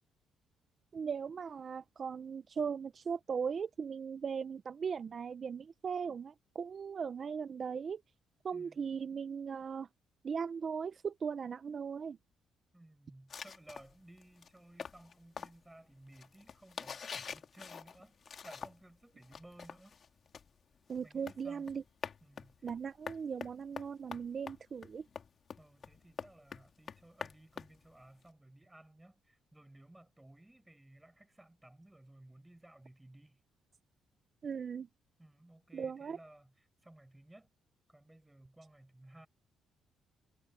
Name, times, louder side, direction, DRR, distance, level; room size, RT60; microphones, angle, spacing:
voice 1, 0.9-8.0 8.4-9.9 10.2-12.2 20.9-21.8 22.6-25.1 34.4-34.9 35.7-36.2, right 6 dB, 45° right, 0.7 m, -38 dB
voice 2, 8.5-9.0 12.7-18.2 18.4-20.0 21.0-21.7 22.2-22.6 25.6-33.4 35.2-37.5 37.9-39.3, right 1 dB, 10° right, 7.8 m, -58 dB
sound 1, 13.3-19.0 19.2-28.3, left 6 dB, 50° left, 2.3 m, -47 dB
cardioid pair, 90°, 0 cm